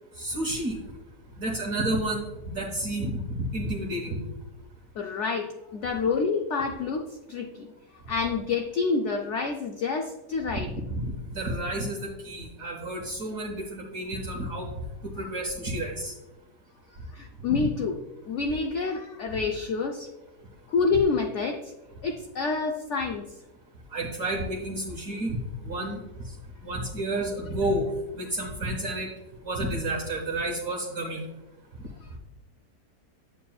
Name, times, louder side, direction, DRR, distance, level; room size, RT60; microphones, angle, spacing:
voice 1, 0.2-0.8 1.4-4.2 10.5-10.6 10.9-14.7 15.0-16.1 17.5-17.6 23.9-26.0 26.2-26.3 26.6-27.8 28.1-29.1 29.4-31.2 31.8-31.9, right 1 dB, 55° right, -1 dB, 1.2 m, -31 dB
voice 2, 5.0-7.7 8.1-10.7 17.1-18.0 18.2-20.1 20.7-21.7 22.0-23.3, left 4 dB, 80° left, 3 dB, 0.6 m, -28 dB
8.3 x 7.5 x 2.3 m, 1.1 s
omnidirectional pair, 1.8 m